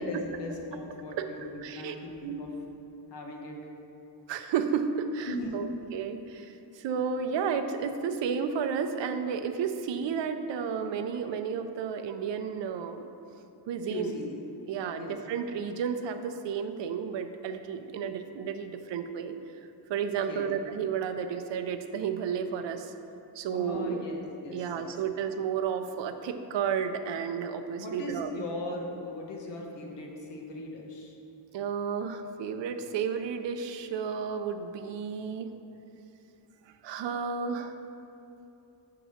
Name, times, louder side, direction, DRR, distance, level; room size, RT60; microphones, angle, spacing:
voice 1, 0.1-2.5 3.1-3.6 5.3-5.8 13.9-14.3 14.9-15.2 20.3-20.5 23.5-25.0 27.8-31.2, left 2 dB, 75° left, 0 dB, 1.2 m, -38 dB
voice 2, 1.1-2.0 2.2-2.5 4.3-5.7 5.9-13.1 13.7-14.1 14.7-19.3 19.9-22.9 23.4-24.1 24.5-28.3 31.5-35.5 36.8-37.7, right 7 dB, 80° right, 7 dB, 0.6 m, -32 dB
7.9 x 3.8 x 6.4 m, 2.8 s
wide cardioid pair, 150°, 43 cm